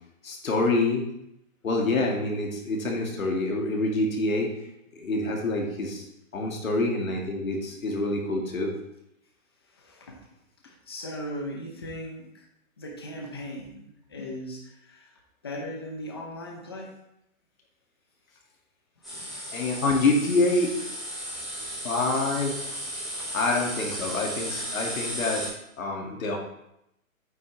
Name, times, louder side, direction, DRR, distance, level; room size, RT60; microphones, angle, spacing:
voice 1, 0.2-1.0 1.6-4.5 4.9-6.1 6.3-8.7 19.5-20.7 21.8-22.6 23.3-25.5 25.8-26.4, left 2 dB, 75° left, 0 dB, 2.4 m, -26 dB
voice 2, 9.8-10.2 10.6-12.4 12.8-15.1 15.4-16.9 19.1-19.3 21.3-21.7, left 1 dB, 20° left, 0 dB, 0.7 m, -38 dB
sound 1, 19.0-25.5, equal, ahead, 2.2 m, -35 dB
9.1 x 6.7 x 3.3 m, 0.81 s
hypercardioid pair, 175°, 42 cm